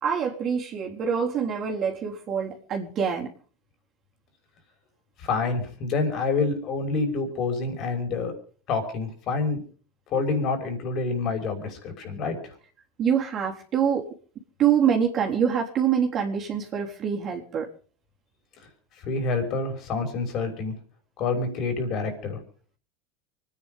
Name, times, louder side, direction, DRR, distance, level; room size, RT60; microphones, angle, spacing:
voice 1, 0.0-3.3 13.0-14.1 14.6-17.7, right 7 dB, 40° right, -1 dB, 3.7 m, -25 dB
voice 2, 5.2-8.3 8.7-9.6 10.1-12.4 19.0-20.7 21.2-22.4, left 4 dB, 50° left, 5 dB, 5.9 m, -27 dB
25.0 x 10.0 x 5.4 m, 0.42 s
hypercardioid pair, 90°, 0 cm